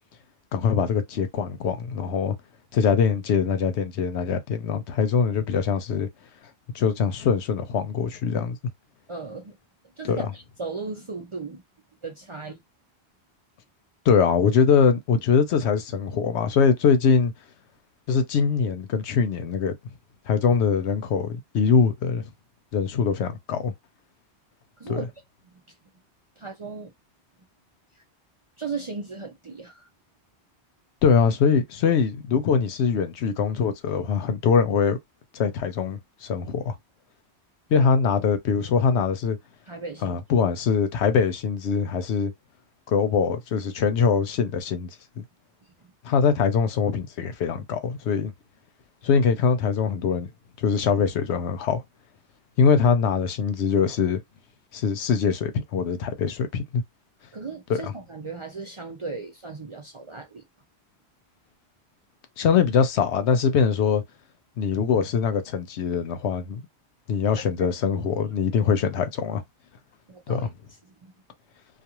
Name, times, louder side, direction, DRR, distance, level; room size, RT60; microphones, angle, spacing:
voice 1, 0.5-2.4 2.7-6.1 6.7-8.6 10.0-10.3 14.1-17.3 18.1-19.7 20.3-22.2 22.7-23.7 24.9-25.0 31.0-35.0 35.3-36.7 37.7-39.4 40.0-42.3 42.9-44.9 45.2-45.3 46.0-48.3 49.0-50.3 50.6-51.8 52.6-54.2 54.7-56.8 57.7-57.9 62.4-64.0 64.6-66.6 67.1-69.4 70.3-70.5, left 6 dB, 85° left, 0.9 m, -22 dB
voice 2, 9.1-9.6 10.0-11.6 12.0-12.6 24.8-25.1 26.4-26.9 28.6-29.9 37.7-37.9 39.7-40.2 57.3-60.4 67.4-67.8 68.2-68.4 70.1-70.5 71.0-71.1, right 4 dB, 45° right, 0.4 m, -36 dB
2.4 x 2.3 x 2.9 m
omnidirectional pair, 1.1 m